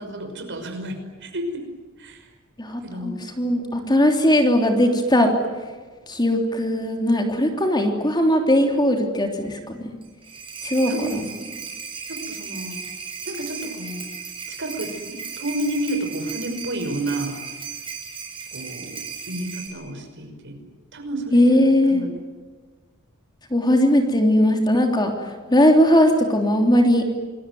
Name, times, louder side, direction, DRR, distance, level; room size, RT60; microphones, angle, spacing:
voice 1, 0.0-1.6 2.0-2.3 2.8-3.2 10.9-11.4 12.1-12.8 13.2-14.1 14.5-17.3 18.5-20.6 20.9-22.2, right 1 dB, 55° right, 5 dB, 5.7 m, -31 dB
voice 2, 2.6-5.3 6.1-10.0 10.6-10.9 21.3-22.0 23.5-25.1 25.5-27.0, left 1 dB, 20° left, 3 dB, 3.4 m, -19 dB
sound 1, 10.0-19.7, right 6 dB, 25° right, 6.9 m, -36 dB
28.0 x 21.5 x 9.5 m, 1.4 s
head